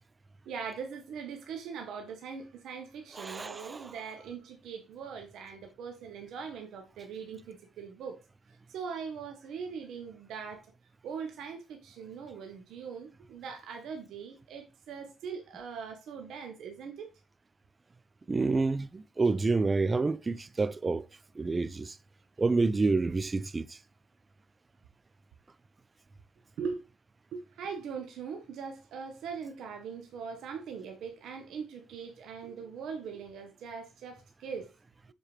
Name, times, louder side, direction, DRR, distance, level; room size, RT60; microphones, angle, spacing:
voice 1, 0.4-8.2 8.7-10.6 11.0-17.1 26.6-26.8 27.3-34.7, right 6 dB, 80° right, 1.1 m, -41 dB
voice 2, 3.2-3.8 18.3-21.0 21.4-21.9 22.4-23.6, right 3 dB, 25° right, 0.4 m, -28 dB
7.3 x 4.5 x 3.3 m
cardioid pair, 90°, 0 cm